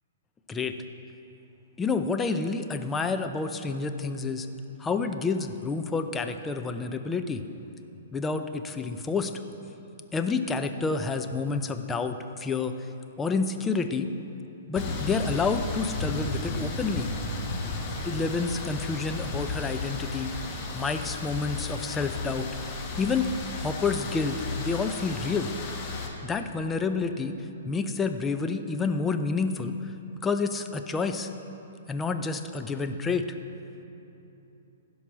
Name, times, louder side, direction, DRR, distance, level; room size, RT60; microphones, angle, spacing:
voice 1, 1.8-4.5 4.8-7.4 8.1-9.3 10.1-12.7 13.2-14.1 14.7-17.1 18.0-20.3 20.7-22.5 23.0-23.3 23.6-25.5 26.2-27.4 27.6-29.9 30.2-31.3 31.9-33.3, left 4 dB, 15° left, 7 dB, 0.6 m, -29 dB
sound 1, 14.7-26.1, left 3 dB, 30° left, 1.6 m, -33 dB
15.5 x 5.5 x 6.1 m, 3.0 s
figure-of-eight pair, 120°, 0 cm